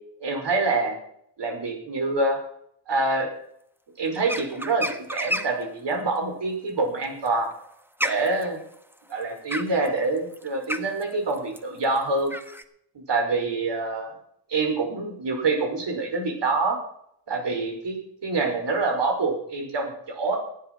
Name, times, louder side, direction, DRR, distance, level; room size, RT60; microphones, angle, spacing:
voice 1, 0.2-1.0 1.4-2.4 2.9-3.3 4.0-7.5 8.0-8.6 9.1-12.3 13.0-14.1 14.5-16.8 17.3-20.4, right 3 dB, 75° right, 3 dB, 5.4 m, -26 dB
sound 1, 4.2-5.7 7.0-12.6, equal, 5° right, 1.4 m, -32 dB
15.0 x 10.0 x 6.1 m, 0.68 s
cardioid pair, 90°, 43 cm